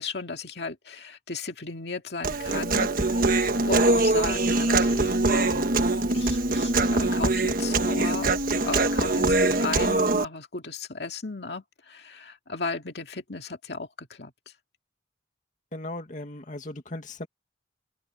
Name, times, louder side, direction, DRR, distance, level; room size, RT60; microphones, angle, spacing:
voice 1, 0.0-3.3 3.6-5.7 6.1-8.3 8.6-14.3, left 3 dB, 65° left, 2.4 m, -35 dB
Human voice, 2.2-10.3, right 2 dB, 55° right, 1.4 m, -23 dB
voice 2, 15.7-17.3, left 1 dB, 45° left, 2.3 m, -37 dB
open air
head